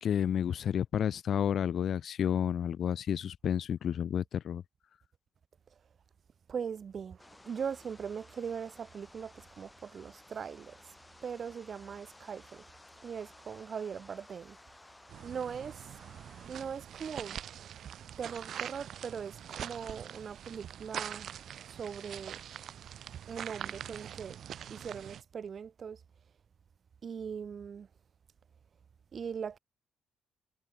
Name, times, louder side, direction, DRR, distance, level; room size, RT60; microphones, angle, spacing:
voice 1, 0.0-4.6, left 9 dB, 60° left, 1.3 m, -31 dB
voice 2, 6.5-10.8 11.2-12.6 13.0-14.6 15.2-16.0 16.4-17.4 18.2-21.3 21.7-22.4 23.3-24.4 24.7-26.0 27.0-27.9 29.1-29.6, right 7 dB, 50° right, 1.7 m, -40 dB
sound 1, 7.2-16.5, left 1 dB, 10° left, 6.0 m, -57 dB
sound 2, 15.1-25.2, right 9 dB, 65° right, 4.5 m, -44 dB
cardioid pair, 90°, 0 cm